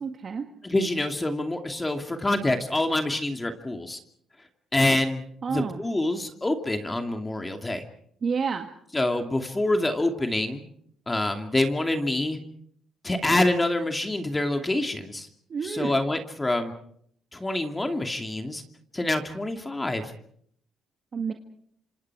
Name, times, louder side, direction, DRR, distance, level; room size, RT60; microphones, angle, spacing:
voice 1, 0.0-0.4 5.4-5.8 8.2-8.7 15.5-15.9 21.1-21.3, right 5 dB, 45° right, 4 dB, 1.8 m, -29 dB
voice 2, 0.6-4.0 4.7-7.8 8.9-10.6 11.1-12.4 13.0-15.3 15.6-16.7 17.3-18.6 18.9-20.1, left 2 dB, 15° left, 5 dB, 2.6 m, -26 dB
27.0 x 26.5 x 4.9 m, 0.65 s
cardioid pair, 90°, 0 cm